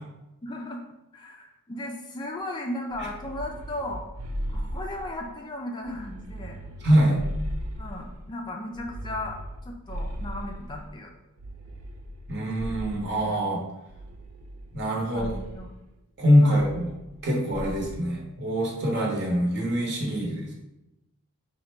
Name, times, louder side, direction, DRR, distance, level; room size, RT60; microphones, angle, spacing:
voice 1, 0.4-0.8 1.1-4.1 4.5-6.6 7.8-9.4 9.7-11.1 13.2-13.4 15.1-15.7 16.4-16.7, left 1 dB, 20° left, 2 dB, 0.3 m, -36 dB
sound 1, 2.9-5.3 5.8-8.3 8.7-10.9 11.4-13.3 13.9-14.9 15.1-15.6 16.5-17.2 17.5-18.0, equal, 90° right, 0.5 m, -37 dB
voice 2, 6.8-7.2 12.3-13.6 14.7-15.4 16.2-16.9 17.2-20.5, equal, 50° right, -2 dB, 1.0 m, -24 dB
3.8 x 2.1 x 4.4 m, 0.94 s
head